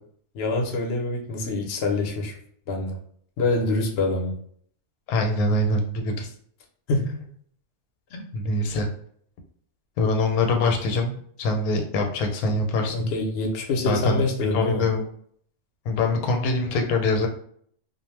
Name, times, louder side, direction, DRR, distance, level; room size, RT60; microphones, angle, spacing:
voice 1, 0.3-2.4 2.7-3.0 3.4-4.4 6.9-7.2 8.1-8.2 12.9-14.9, left 2 dB, 60° left, 1 dB, 0.7 m, -25 dB
voice 2, 5.1-6.3 8.3-8.9 10.0-13.1 13.9-15.1 15.9-17.3, left 2 dB, 85° left, 3 dB, 1.0 m, -24 dB
2.4 x 2.1 x 3.1 m, 0.63 s
omnidirectional pair, 1.5 m